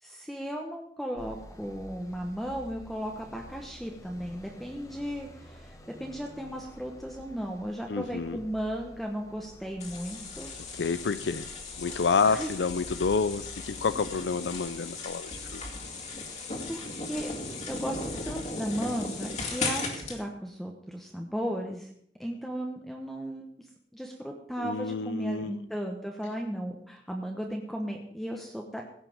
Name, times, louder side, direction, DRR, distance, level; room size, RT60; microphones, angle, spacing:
voice 1, 0.0-5.7 6.0-10.5 12.2-12.5 16.7-17.3 17.7-21.9 22.2-23.5 23.9-28.8, equal, ahead, 1 dB, 1.0 m, -35 dB
sound 1, 1.2-14.7, equal, 20° left, 1.3 m, -50 dB
voice 2, 7.9-8.4 10.7-11.5 11.8-15.6 24.6-25.6, left 5 dB, 85° left, 13 dB, 0.5 m, -29 dB
sound 2, 9.8-20.2, left 3 dB, 40° left, 2.3 m, -37 dB
16.5 x 5.8 x 7.0 m, 0.65 s
head